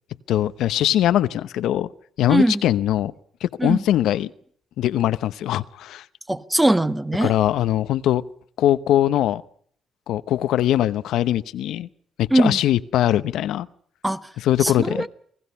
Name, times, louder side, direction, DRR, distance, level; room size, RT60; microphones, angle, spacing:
voice 1, 0.3-1.9 2.2-3.1 3.4-4.3 4.8-6.0 7.2-8.2 8.6-9.4 10.1-11.9 12.2-13.7 14.4-15.1, left 12 dB, 80° left, 0.9 m, -21 dB
voice 2, 2.3-2.6 3.6-3.8 6.3-7.3 12.3-12.6 14.0-14.3 14.6-15.1, right 1 dB, 10° right, 1.4 m, -20 dB
29.0 x 19.5 x 5.6 m
cardioid pair, 90°, 0 cm